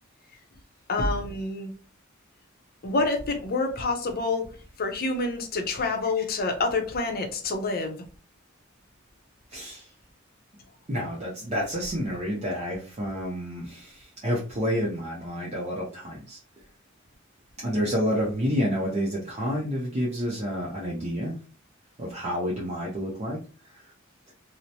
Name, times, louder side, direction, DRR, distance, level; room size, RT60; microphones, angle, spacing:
voice 1, 0.9-1.7 2.8-4.5 4.8-8.0, left 3 dB, 45° left, 4 dB, 0.6 m, -27 dB
voice 2, 9.5-9.9 10.9-16.4 17.6-21.4 22.0-23.4 23.7-23.8, equal, 35° right, -4 dB, 0.6 m, -29 dB
2.9 x 2.1 x 2.6 m, 0.37 s
head